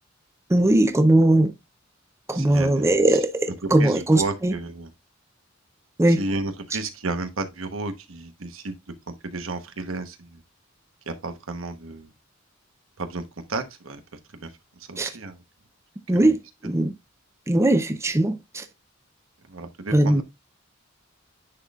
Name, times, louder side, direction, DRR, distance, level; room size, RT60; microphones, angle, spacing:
voice 1, 0.5-1.5 2.3-4.5 6.0-6.2 15.0-15.1 16.1-16.4 16.6-16.9 17.5-18.6 19.9-20.2, right 1 dB, 15° right, 0.5 m, -19 dB
voice 2, 2.3-3.2 3.6-4.9 6.1-8.8 9.1-10.4 11.1-12.1 13.0-13.2 13.5-15.4 16.1-16.3 19.4-20.2, right 3 dB, 85° right, 1.1 m, -33 dB
9.9 x 4.1 x 2.4 m
head